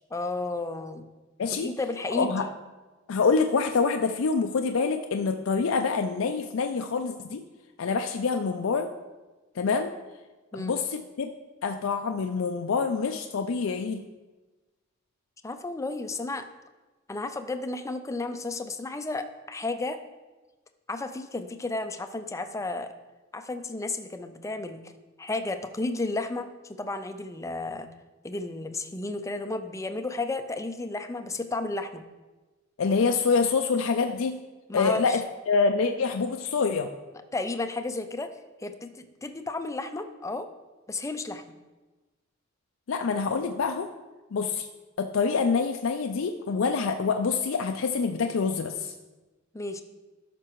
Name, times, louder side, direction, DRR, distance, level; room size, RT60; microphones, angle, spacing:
voice 1, 0.1-1.1 1.6-2.5 10.5-10.8 15.4-16.5 17.1-20.0 20.9-22.9 23.3-24.9 25.2-27.9 28.2-32.0 34.7-35.2 37.3-38.3 38.6-40.5 40.9-41.4 49.5-49.8, left 2 dB, 15° left, 8 dB, 0.5 m, -33 dB
voice 2, 2.1-2.5 3.1-7.4 7.8-8.9 9.6-9.9 10.5-11.3 11.6-14.0 32.8-34.3 34.7-35.2 35.5-36.9 42.9-43.9 44.3-44.7 45.0-48.9, left 5 dB, 80° left, 5 dB, 0.4 m, -26 dB
13.5 x 5.9 x 3.1 m, 1.2 s
head